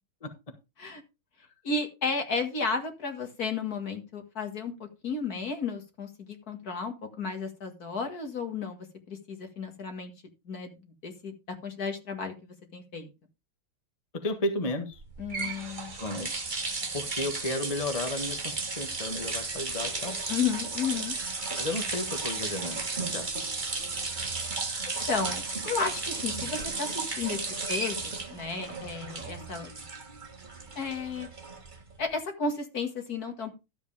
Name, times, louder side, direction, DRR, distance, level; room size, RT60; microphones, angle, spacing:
voice 1, 1.6-10.1 10.5-13.1 15.2-15.9 20.3-21.1 24.9-27.4 27.7-29.7 30.8-31.3 32.0-33.5, left 4 dB, 50° left, 6 dB, 2.2 m, -33 dB
voice 2, 14.2-15.0 15.9-16.4 16.9-20.2 21.6-22.8 23.1-23.3, left 1 dB, 20° left, 5 dB, 1.4 m, -33 dB
sound 1, 15.0-32.0, right 3 dB, 25° right, 1.5 m, -34 dB
13.0 x 8.0 x 3.4 m, 0.26 s
omnidirectional pair, 2.2 m